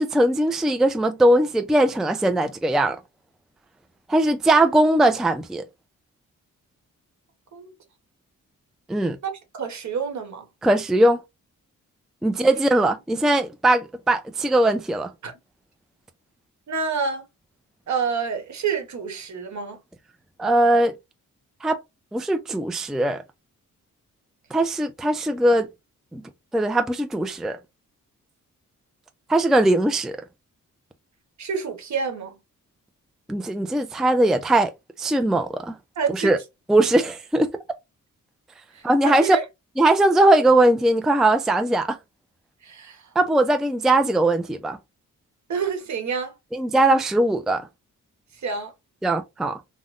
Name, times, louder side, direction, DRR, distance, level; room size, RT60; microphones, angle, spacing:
voice 1, 0.0-3.0 4.1-5.6 8.9-9.2 10.6-11.2 12.2-15.1 20.4-20.9 21.6-21.8 22.1-23.2 24.5-25.7 26.1-26.2 26.5-27.6 29.3-30.2 33.3-34.7 35.0-35.8 36.1-36.4 36.7-37.5 38.8-39.4 39.8-42.0 43.2-44.8 46.5-47.7 49.0-49.6, right 1 dB, ahead, 0.4 m, -20 dB
voice 2, 9.2-10.5 15.2-15.3 16.7-17.2 17.9-19.8 31.4-32.3 36.0-36.3 38.7-39.4 42.6-43.0 45.5-46.3 48.4-48.7, right 5 dB, 60° right, 1.2 m, -28 dB
3.6 x 2.2 x 2.4 m
cardioid pair, 85°, 32 cm